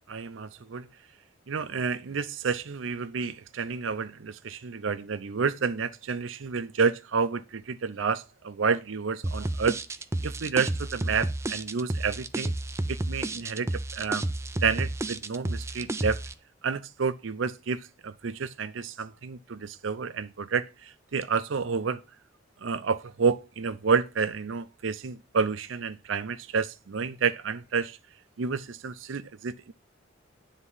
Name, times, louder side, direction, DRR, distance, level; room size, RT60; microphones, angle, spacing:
voice 1, 0.1-0.9 1.5-9.8 10.2-12.5 12.9-14.3 14.6-16.2 16.6-22.0 22.6-28.0 28.4-29.7, right 5 dB, 80° right, 0.5 m, -30 dB
sound 1, 9.2-16.3, right 1 dB, 15° right, 0.4 m, -31 dB
9.8 x 3.7 x 5.4 m
head